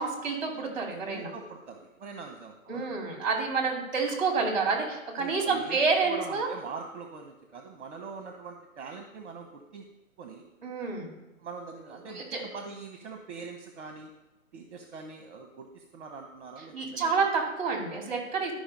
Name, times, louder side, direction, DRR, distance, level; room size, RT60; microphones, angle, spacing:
voice 1, 0.0-1.3 2.7-6.5 10.6-11.1 12.1-12.4 16.7-18.5, right 4 dB, 30° right, 1 dB, 2.3 m, -29 dB
voice 2, 1.1-2.9 5.2-9.8 10.2-10.4 11.4-14.1 14.5-17.1, right 4 dB, 55° right, 4 dB, 1.0 m, -43 dB
12.0 x 5.2 x 5.2 m, 0.99 s
hypercardioid pair, 175°, 41 cm